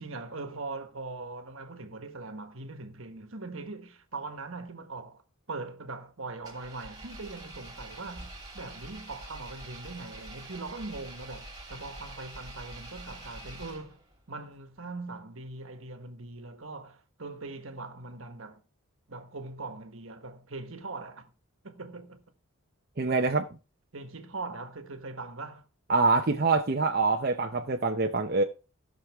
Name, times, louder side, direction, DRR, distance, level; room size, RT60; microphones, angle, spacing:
voice 1, 0.0-5.2 5.5-14.0 14.3-18.6 19.1-21.3 21.6-22.2 23.9-25.7, right 3 dB, 70° right, 1.4 m, -41 dB
Engine, 6.4-14.2, right 1 dB, 20° right, 2.6 m, -45 dB
voice 2, 23.0-23.5 25.9-28.4, right 3 dB, 45° right, 0.7 m, -25 dB
18.0 x 6.3 x 3.6 m
head